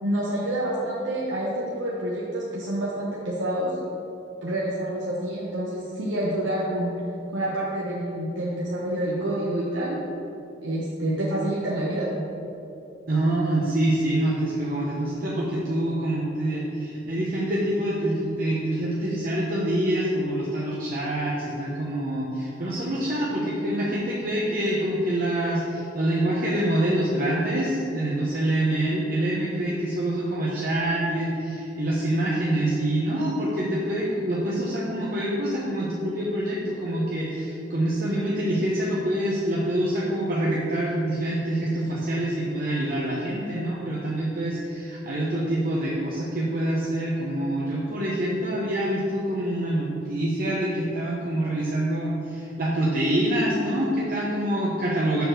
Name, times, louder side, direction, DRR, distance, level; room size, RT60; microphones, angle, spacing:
voice 1, 0.0-3.7 4.4-6.9 7.3-10.0 10.6-12.1, right 1 dB, 85° right, -6 dB, 1.1 m, -28 dB
voice 2, 13.1-55.2, right 1 dB, 50° right, -6 dB, 1.0 m, -26 dB
6.8 x 4.2 x 6.6 m, 2.9 s
head